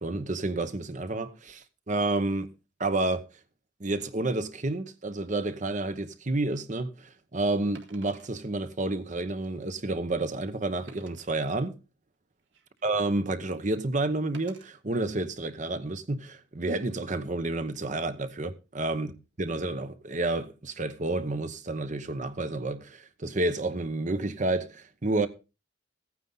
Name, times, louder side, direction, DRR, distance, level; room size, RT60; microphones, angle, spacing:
voice 1, 0.0-2.5 2.8-3.3 3.8-11.8 12.8-19.1 19.4-25.3, right 2 dB, 40° right, 0.9 m, -30 dB
Wood, 6.1-6.3 7.7-8.3 9.0-9.1 9.6-9.7 10.9-11.4 12.1-12.9 14.3-14.7 15.4-15.6, right 5 dB, 70° right, 1.9 m, -54 dB
15.0 x 9.5 x 3.9 m
head